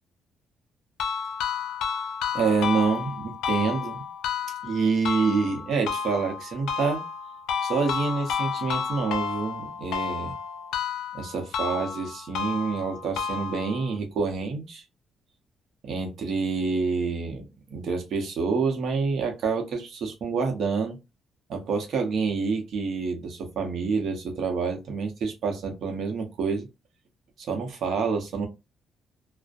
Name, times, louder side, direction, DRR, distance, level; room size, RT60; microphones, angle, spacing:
sound 1, 1.0-14.0, left 7 dB, 85° left, 0.4 m, -31 dB
voice 1, 2.3-4.0 4.6-7.0 7.6-10.3 11.1-14.8 15.8-21.0 21.5-26.7 27.4-28.5, right 4 dB, 65° right, 3 dB, 0.7 m, -27 dB
2.5 x 2.1 x 2.4 m, 0.25 s
cardioid pair, 90°, 0 cm